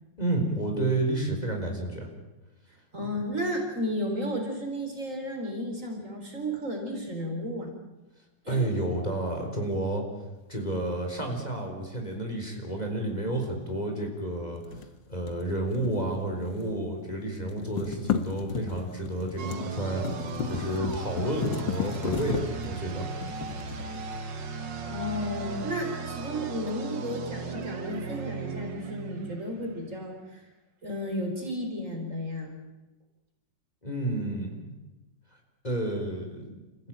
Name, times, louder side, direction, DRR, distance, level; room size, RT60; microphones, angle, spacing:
voice 1, 0.2-2.1 8.5-10.0 10.5-23.1 33.8-34.5 35.6-36.6, right 1 dB, 20° left, 2 dB, 4.3 m, -30 dB
voice 2, 2.9-7.7 8.4-8.9 24.9-30.4 30.8-32.5, equal, 40° right, 2 dB, 4.7 m, -33 dB
sound 1, 14.6-16.9 17.2-24.5, left 7 dB, 80° left, 2.0 m, -35 dB
sound 2, 19.4-30.0, right 4 dB, 75° right, 2.4 m, -37 dB
29.5 x 15.5 x 9.0 m, 1.0 s
omnidirectional pair, 2.0 m